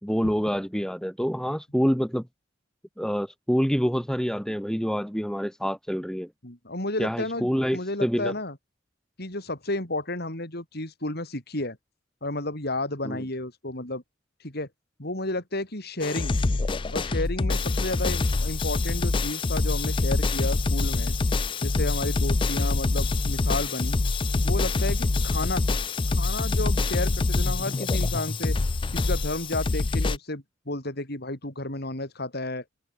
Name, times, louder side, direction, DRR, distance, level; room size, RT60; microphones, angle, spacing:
voice 1, 0.0-2.2 3.0-6.3 7.0-8.3 13.0-13.2, equal, 5° left, 3.4 m, -27 dB
voice 2, 6.4-8.6 9.2-11.8 12.2-14.0 14.4-14.7 15.0-16.3 16.9-21.1 21.6-24.0 24.4-25.8 26.1-28.6 28.9-32.6, left 2 dB, 55° left, 5.9 m, -32 dB
sound 1, 16.0-30.2, left 3 dB, 25° left, 0.4 m, -25 dB
head